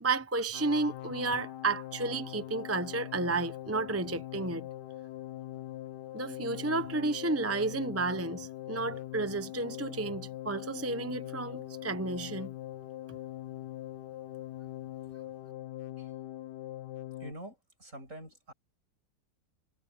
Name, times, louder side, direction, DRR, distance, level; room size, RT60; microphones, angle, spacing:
voice 1, 0.0-4.7 6.1-12.5, right 3 dB, 15° right, 0.6 m, -32 dB
sound 1, 0.5-17.3, left 14 dB, 85° left, 1.3 m, -42 dB
voice 2, 17.2-18.5, right 1 dB, 50° right, 8.6 m, -46 dB
omnidirectional pair, 1.7 m